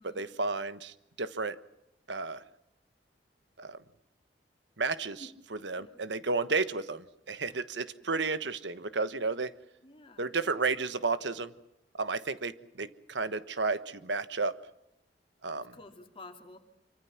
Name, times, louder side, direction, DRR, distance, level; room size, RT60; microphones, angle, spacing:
voice 1, 0.1-1.5 2.1-2.4 3.6-3.8 4.8-9.5 10.2-11.5 12.0-14.6 15.4-15.7, right 3 dB, 85° right, 13 dB, 1.3 m, -32 dB
voice 2, 9.8-10.2 15.5-16.6, left 2 dB, 30° left, 4 dB, 3.0 m, -50 dB
26.5 x 25.0 x 6.0 m, 0.83 s
head